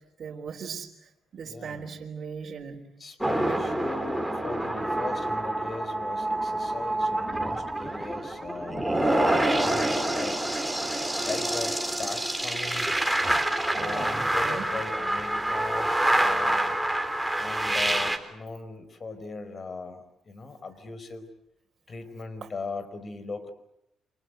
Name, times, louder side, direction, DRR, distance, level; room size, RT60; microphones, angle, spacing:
voice 1, 0.2-2.8 3.4-3.6 13.7-14.7 22.4-22.5, right 6 dB, 50° right, -2 dB, 3.8 m, -39 dB
voice 2, 1.4-2.0 3.0-8.9 9.6-10.4 11.2-12.9 13.7-16.8 17.4-21.3 21.9-23.5, left 3 dB, 40° left, 12 dB, 4.8 m, -38 dB
sound 1, 3.2-18.2, right 1 dB, 5° right, 3.7 m, -27 dB
29.0 x 26.0 x 7.9 m, 0.79 s
cardioid pair, 90°, 0 cm